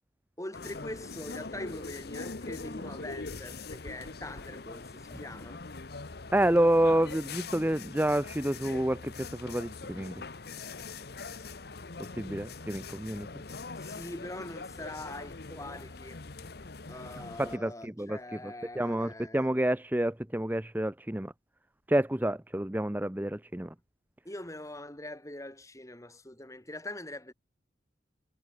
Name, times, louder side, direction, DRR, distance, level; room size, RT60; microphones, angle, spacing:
voice 1, 0.4-5.6 13.8-16.2 16.9-19.5 24.2-27.3, left 1 dB, 20° left, 4.1 m, -43 dB
sound 1, 0.5-17.6, left 3 dB, 60° left, 1.1 m, -42 dB
voice 2, 6.3-10.2 12.0-13.3 17.4-21.3 21.9-23.7, right 1 dB, 10° right, 0.8 m, -29 dB
head